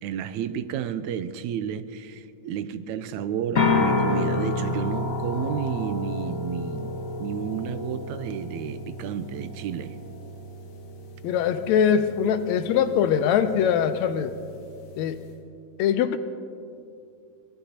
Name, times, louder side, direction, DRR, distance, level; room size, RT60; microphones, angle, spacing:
voice 1, 0.0-6.9 7.2-10.0, right 8 dB, 85° right, 12 dB, 2.0 m, -31 dB
sound 1, 3.5-15.3, left 2 dB, 45° left, 1.2 m, -30 dB
voice 2, 11.2-14.4 15.0-15.2 15.8-16.2, left 8 dB, 80° left, 10 dB, 1.9 m, -22 dB
25.0 x 20.0 x 2.9 m, 2.5 s
omnidirectional pair, 3.3 m